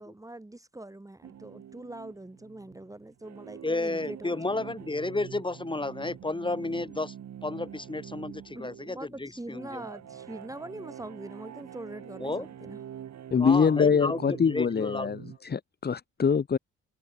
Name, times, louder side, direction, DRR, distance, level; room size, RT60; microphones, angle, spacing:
voice 1, 0.0-4.4 8.6-12.8, right 1 dB, 10° right, 2.9 m, -43 dB
sound 1, 1.2-15.4, right 10 dB, 65° right, 5.3 m, -45 dB
voice 2, 3.6-7.2 7.4-9.9 12.2-12.5 13.4-15.1, left 2 dB, 15° left, 5.4 m, -32 dB
voice 3, 13.3-16.6, left 6 dB, 35° left, 1.4 m, -24 dB
cardioid pair, 90°, 30 cm